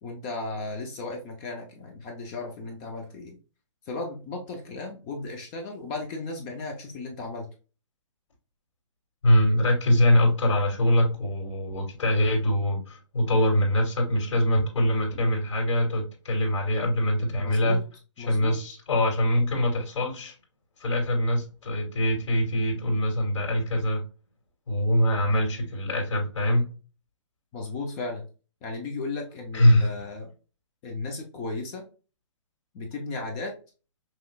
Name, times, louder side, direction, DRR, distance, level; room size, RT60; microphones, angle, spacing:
voice 1, 0.0-3.4 3.8-7.5 17.3-17.8 18.2-18.6 27.5-28.2 28.6-30.3 30.8-31.8 32.7-33.5, left 3 dB, 15° left, 2 dB, 0.4 m, -35 dB
voice 2, 9.2-17.8 18.3-20.3 20.8-24.0 24.7-26.7 29.5-29.9, left 1 dB, 65° left, 0 dB, 2.3 m, -23 dB
5.8 x 3.1 x 2.3 m, 0.35 s
hypercardioid pair, 170°, 16 cm